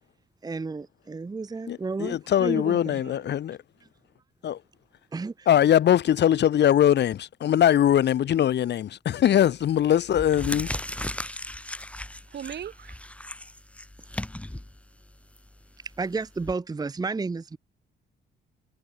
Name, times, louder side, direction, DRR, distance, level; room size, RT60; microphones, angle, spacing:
voice 1, 0.4-3.0 5.1-5.5 16.0-17.6, right 4 dB, 20° right, 0.8 m, -32 dB
voice 2, 1.7-3.6 4.4-4.6 5.5-10.7, left 10 dB, 60° left, 1.1 m, -21 dB
voice 3, 2.3-3.3 12.3-13.3, right 9 dB, 60° right, 1.9 m, -41 dB
sound 1, 9.3-9.6 10.0-16.5, left 1 dB, 5° left, 1.6 m, -37 dB
cardioid pair, 90°, 20 cm